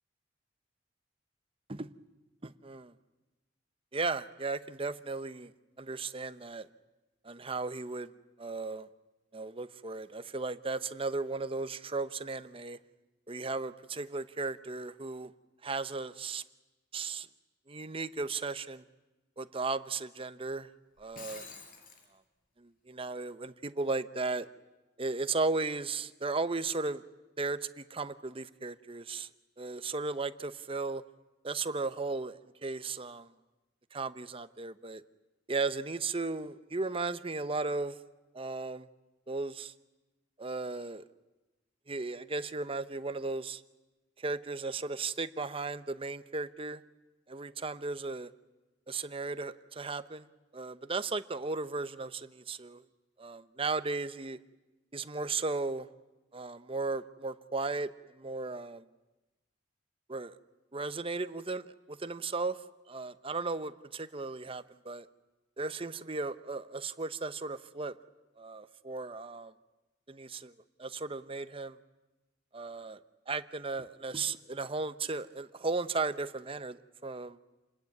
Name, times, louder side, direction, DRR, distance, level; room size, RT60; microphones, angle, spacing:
voice 1, 2.4-2.9 3.9-5.5 5.8-6.7 7.2-8.1 8.4-8.9 9.3-12.8 13.3-15.3 15.6-16.4 16.9-17.3 17.7-18.8 19.4-20.7 21.0-21.4 22.6-24.5 25.0-27.0 27.4-29.3 29.6-31.0 31.4-33.3 33.9-35.0 35.5-38.0 38.3-38.9 39.3-39.7 40.4-41.0 41.9-43.6 44.2-46.8 47.3-48.3 48.9-50.3 50.5-52.8 53.2-54.4 54.9-55.9 56.3-58.8 60.1-60.4 60.7-65.1 65.6-67.9 68.4-69.5 70.1-70.5 70.8-71.8 72.5-73.0 73.3-77.4, right 3 dB, 30° right, 13 dB, 0.9 m, -35 dB
Shatter, 21.0-22.1, left 4 dB, 50° left, 5.1 m, -47 dB
28.5 x 20.5 x 9.5 m, 1.1 s
head